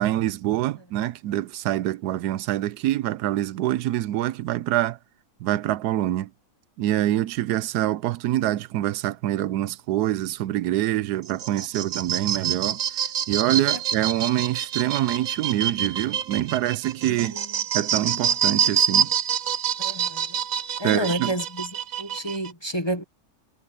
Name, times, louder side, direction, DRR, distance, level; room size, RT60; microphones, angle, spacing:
voice 1, 0.0-5.0 5.4-6.3 6.8-12.8 13.3-17.4 17.7-19.1 20.8-21.3, right 14 dB, 90° right, 1.2 m, -25 dB
sound 1, 11.2-22.5, right 9 dB, 65° right, 1.3 m, -26 dB
voice 2, 19.8-20.2 20.8-21.7 22.0-23.0, right 1 dB, 20° left, 0.8 m, -29 dB
omnidirectional pair, 1.6 m